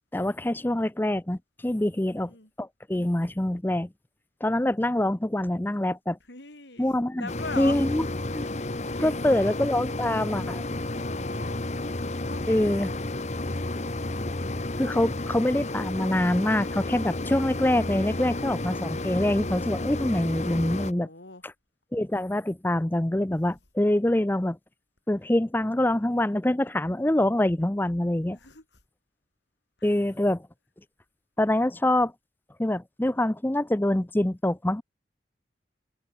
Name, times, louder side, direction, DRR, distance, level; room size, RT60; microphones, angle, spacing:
voice 1, 0.1-2.3 2.6-3.9 4.4-6.2 6.8-7.3 7.6-8.0 8.3-8.5 9.0-10.6 12.5-12.9 14.8-21.1 21.4-21.5 21.9-24.6 25.1-28.4 29.8-30.5 31.4-32.1 32.6-34.8, left 1 dB, 10° left, 0.5 m, -25 dB
voice 2, 2.0-2.5 6.3-6.9 7.2-7.8 8.5-9.4 10.9-11.6 12.2-12.9 20.9-21.4 25.5-26.4 28.3-28.6 29.8-29.9, left 3 dB, 80° left, 5.9 m, -43 dB
sound 1, 7.3-20.9, left 2 dB, 40° left, 1.2 m, -32 dB
head